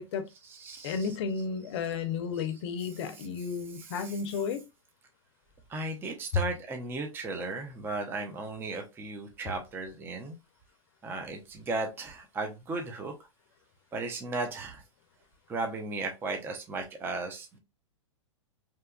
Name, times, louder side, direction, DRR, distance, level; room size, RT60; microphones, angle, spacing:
voice 1, 0.3-1.2 1.9-2.0 2.3-2.5 2.8-4.4 5.7-10.4 11.0-13.1 13.9-14.8 15.5-17.6, right 3 dB, 15° right, 0.4 m, -36 dB
voice 2, 0.8-4.6, left 6 dB, 55° left, 0.5 m, -33 dB
2.8 x 2.2 x 2.2 m
hypercardioid pair, 125°, 17 cm